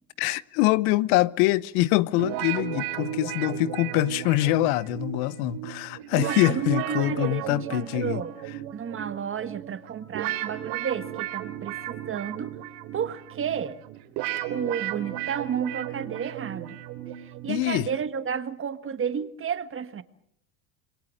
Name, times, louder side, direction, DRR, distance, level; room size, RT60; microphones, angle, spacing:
voice 1, 0.2-8.2 17.5-17.9, left 18 dB, 75° left, 0.9 m, -24 dB
sound 1, 2.2-18.1, right 13 dB, 80° right, 3.7 m, -35 dB
voice 2, 6.1-8.4 8.7-12.6 12.9-13.8 14.5-16.8 17.4-20.0, right 7 dB, 30° right, 1.6 m, -32 dB
27.5 x 22.5 x 6.5 m
supercardioid pair, 120°, 43 cm